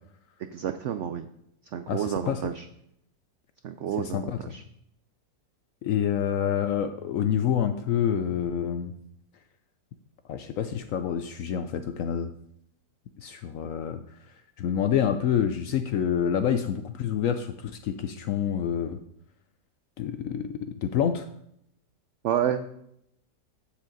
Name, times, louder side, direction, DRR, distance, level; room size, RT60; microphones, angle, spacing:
voice 1, 0.5-1.3 1.7-2.6 3.6-4.6 22.2-22.7, right 9 dB, 90° right, 9 dB, 0.6 m, -29 dB
voice 2, 1.9-2.4 4.0-4.6 5.8-8.9 10.3-12.3 13.2-14.0 14.6-19.0 20.0-21.3, left 9 dB, 70° left, 9 dB, 0.8 m, -27 dB
8.4 x 7.4 x 3.9 m, 0.74 s
omnidirectional pair, 1.8 m